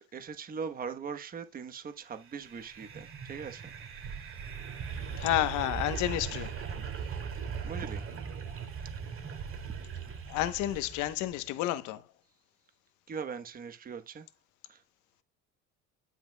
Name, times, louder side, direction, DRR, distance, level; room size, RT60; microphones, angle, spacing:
voice 1, 0.1-3.7 7.0-7.2 7.6-8.0 13.1-14.3 14.7-14.8, right 6 dB, 30° right, 1.1 m, -40 dB
sound 1, 2.2-11.4, right 6 dB, 45° right, 2.4 m, -39 dB
voice 2, 5.2-6.5 10.3-12.0, left 14 dB, 80° left, 1.0 m, -30 dB
10.5 x 5.7 x 2.2 m
cardioid pair, 115°, 29 cm